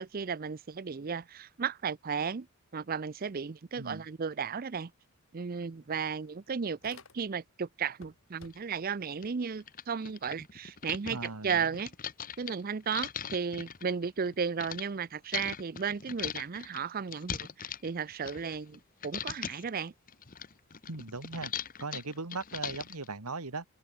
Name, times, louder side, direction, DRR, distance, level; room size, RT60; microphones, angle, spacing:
voice 1, 0.0-2.5 2.7-4.9 5.3-11.9 12.4-19.9, right 6 dB, 40° right, 0.5 m, -34 dB
sound 1, 4.9-5.0 5.3-7.5 7.9-8.9, left 3 dB, 65° left, 5.4 m, -56 dB
sound 2, 8.5-8.6 9.2-9.3 9.6-14.8 15.3-18.8 19.0-19.7 20.1-23.1, left 8 dB, 40° left, 1.4 m, -40 dB
voice 2, 11.1-11.6 20.9-21.5 21.8-23.6, right 3 dB, 90° right, 2.2 m, -38 dB
open air
head